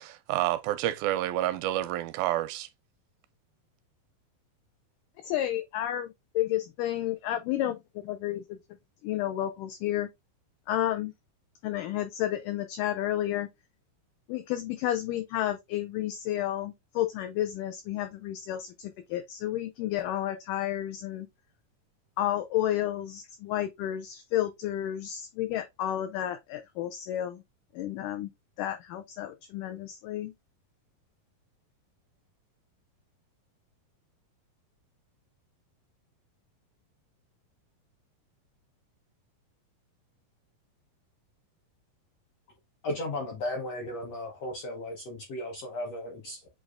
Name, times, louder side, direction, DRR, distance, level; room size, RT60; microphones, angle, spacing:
voice 1, 0.0-2.7, right 14 dB, 85° right, 2.4 m, -29 dB
voice 2, 5.2-7.8 8.0-8.6 9.0-10.1 10.7-11.1 11.6-13.5 14.3-21.3 22.2-27.4 27.7-28.3 28.6-30.3, left 12 dB, 85° left, 1.8 m, -31 dB
voice 3, 42.8-46.5, left 1 dB, 70° left, 1.5 m, -35 dB
7.9 x 2.7 x 2.4 m
omnidirectional pair, 4.2 m